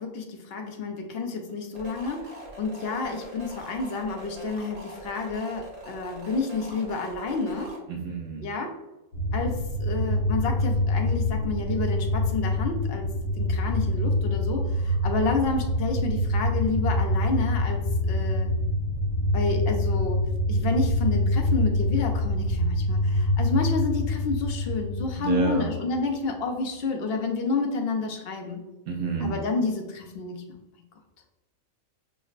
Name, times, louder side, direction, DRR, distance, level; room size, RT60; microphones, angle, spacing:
voice 1, 0.0-7.8 8.4-8.7 9.3-13.1 13.4-18.5 19.3-20.2 20.5-28.6 29.2-30.4, left 3 dB, 60° left, 3 dB, 0.6 m, -30 dB
sound 1, 1.7-7.8, equal, 35° right, 0.9 m, -42 dB
voice 2, 7.9-8.4 25.2-25.7 28.9-29.3, right 4 dB, 70° right, 0 dB, 0.9 m, -29 dB
sound 2, 9.1-25.9, left 1 dB, 85° left, 1.2 m, -25 dB
6.0 x 2.0 x 2.4 m, 1.0 s
omnidirectional pair, 1.4 m